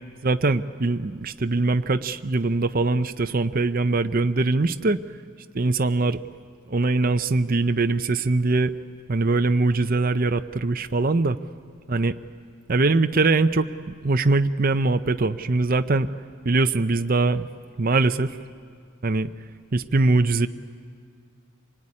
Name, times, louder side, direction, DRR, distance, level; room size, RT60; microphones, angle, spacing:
voice 1, 0.2-5.0 5.5-6.2 6.7-8.7 9.1-11.4 11.9-12.1 12.7-13.7 14.0-16.1 16.4-17.5 17.8-18.4 19.0-19.3 19.7-20.5, right 3 dB, 40° right, 9 dB, 0.7 m, -22 dB
25.5 x 19.5 x 9.9 m, 2.2 s
head